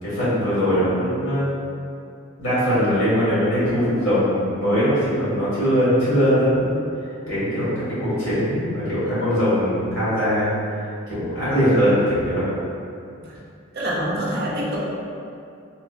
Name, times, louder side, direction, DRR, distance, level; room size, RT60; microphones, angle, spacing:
voice 1, 0.0-1.5 2.4-6.8 7.2-10.5 11.1-12.4, equal, 75° left, -12 dB, 1.4 m, -21 dB
voice 2, 13.7-14.8, equal, 45° right, -5 dB, 0.4 m, -25 dB
3.1 x 2.0 x 2.3 m, 2.5 s
head